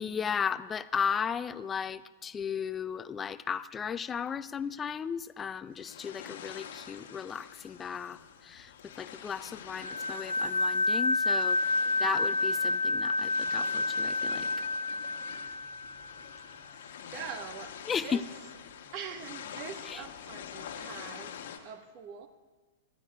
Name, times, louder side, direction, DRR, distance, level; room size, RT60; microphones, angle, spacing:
voice 1, 0.0-11.6 12.0-14.5 17.9-18.2 19.9-20.0, left 7 dB, 20° left, 16 dB, 0.4 m, -35 dB
sound 1, 5.8-21.6, left 8 dB, 55° left, 1.3 m, -46 dB
sound 2, 9.8-16.3, left 2 dB, 90° right, 0.6 m, -29 dB
voice 2, 11.8-12.3 15.5-15.9 16.8-18.2 18.9-21.4 21.6-22.3, right 7 dB, 40° right, 8 dB, 1.2 m, -44 dB
24.5 x 15.0 x 2.3 m, 1.3 s
figure-of-eight pair, 100°, 0 cm